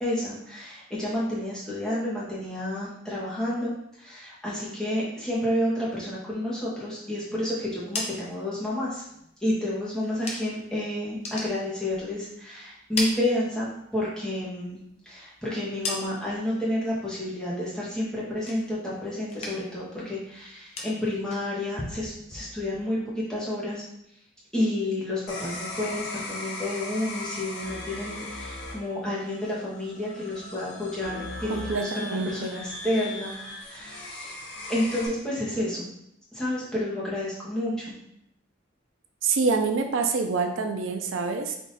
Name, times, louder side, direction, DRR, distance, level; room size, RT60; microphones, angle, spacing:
voice 1, 0.0-3.7 4.0-9.0 9.4-14.8 15.1-23.8 24.5-33.3 33.6-34.3 34.7-35.9 36.3-38.0, left 1 dB, 5° left, -8 dB, 1.1 m, -30 dB
sound 1, 7.6-10.7 11.0-12.4 12.7-14.0 14.3-16.5 16.8-17.3 17.7-19.0 19.2-19.9 20.1-23.0, left 2 dB, 30° left, 0.6 m, -38 dB
sound 2, 25.3-35.1, left 2 dB, 55° left, 0.8 m, -38 dB
voice 2, 31.5-32.6 39.2-41.6, right 4 dB, 85° right, 5 dB, 0.4 m, -26 dB
3.4 x 2.7 x 4.0 m, 0.78 s
head